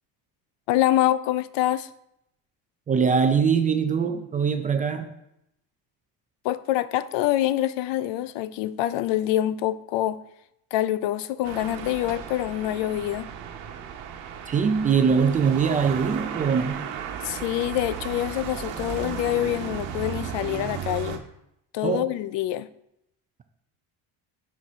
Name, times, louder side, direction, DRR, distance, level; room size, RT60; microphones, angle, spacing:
voice 1, 0.7-1.9 6.4-10.2 10.7-13.3 17.2-21.2 21.7-22.7, left 13 dB, 80° left, 0.5 m, -25 dB
voice 2, 2.9-5.1 14.5-16.9 21.8-22.1, right 6 dB, 20° right, 0.3 m, -22 dB
sound 1, 11.4-21.2, right 8 dB, 85° right, 1.1 m, -35 dB
6.5 x 4.5 x 5.6 m
cardioid pair, 160°, 42 cm